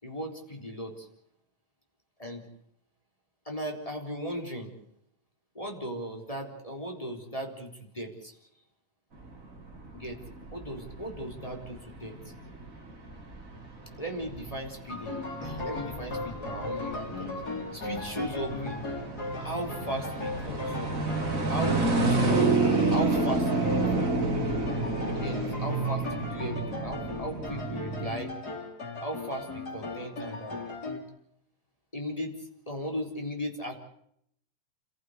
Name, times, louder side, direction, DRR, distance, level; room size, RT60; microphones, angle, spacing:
voice 1, 0.0-1.1 2.2-2.4 3.5-4.7 5.5-8.4 9.9-10.2 10.5-12.2 14.0-17.4 17.7-18.9 19.4-20.9 21.5-24.1 25.1-28.3 29.0-30.6 31.9-33.7, equal, 10° left, 1 dB, 3.8 m, -37 dB
sound 1, 9.2-28.1, right 3 dB, 25° right, 3.1 m, -30 dB
sound 2, 14.9-31.0, left 3 dB, 30° left, 3.7 m, -37 dB
29.0 x 15.0 x 8.1 m, 0.73 s
omnidirectional pair, 3.8 m